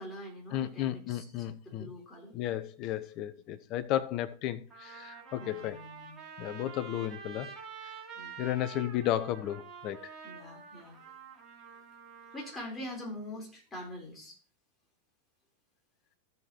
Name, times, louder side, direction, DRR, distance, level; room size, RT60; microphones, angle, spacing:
voice 1, 0.0-2.3 5.4-6.2 8.1-8.5 10.2-11.0 12.3-14.4, left 1 dB, 10° left, 3.8 m, -44 dB
voice 2, 0.5-1.9 2.3-5.8 6.4-7.5 8.4-10.0, left 12 dB, 40° left, 0.7 m, -33 dB
Trumpet, 4.7-12.6, right 6 dB, 20° right, 3.2 m, -48 dB
15.0 x 6.7 x 3.0 m
figure-of-eight pair, 90°, 0 cm